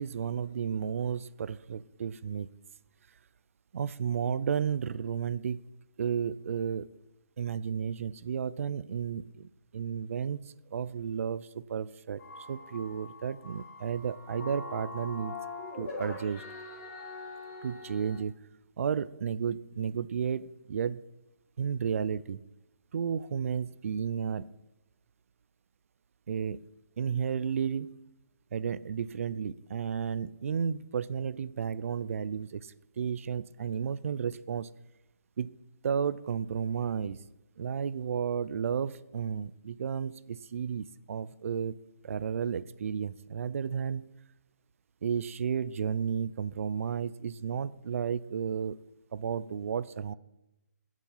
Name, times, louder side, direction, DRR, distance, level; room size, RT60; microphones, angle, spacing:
voice 1, 0.0-2.5 3.7-5.6 6.0-6.9 7.4-10.4 10.7-12.2 12.5-15.4 15.8-16.4 17.6-18.4 18.8-21.0 21.6-22.4 22.9-24.5 26.3-26.6 27.0-27.9 28.5-34.7 35.4-35.5 35.8-37.2 37.6-41.8 42.0-44.1 45.0-48.8 49.1-50.1, right 7 dB, 50° right, 17 dB, 0.5 m, -33 dB
sound 1, 12.2-18.2, left 3 dB, 20° left, 4.3 m, -43 dB
19.0 x 7.4 x 5.7 m, 0.93 s
hypercardioid pair, 160°, 9 cm